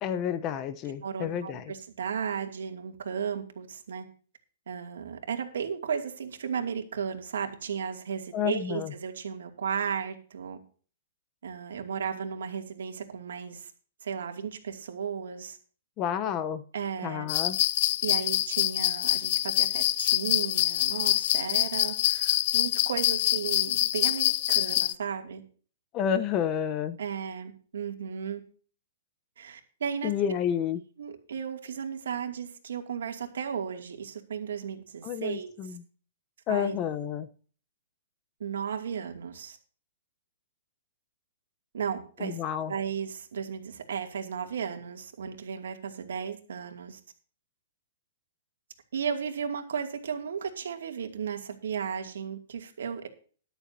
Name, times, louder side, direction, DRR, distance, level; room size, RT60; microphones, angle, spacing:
voice 1, 0.0-1.6 8.3-8.9 16.0-16.6 17.0-17.6 25.9-27.0 30.0-30.8 35.0-35.8 36.5-37.3 42.2-42.7, left 8 dB, 25° left, 12 dB, 0.8 m, -30 dB
voice 2, 1.0-4.0 4.7-10.6 11.4-13.7 14.0-15.6 16.7-17.3 18.0-25.4 27.0-28.4 29.4-30.1 31.0-35.5 36.5-36.8 38.4-39.6 41.7-42.4 42.7-47.0 48.9-53.1, right 7 dB, 80° right, 4 dB, 2.5 m, -35 dB
sound 1, 17.3-24.9, left 15 dB, 45° left, 0.5 m, -26 dB
13.0 x 11.5 x 2.8 m, 0.41 s
hypercardioid pair, 160°, 0 cm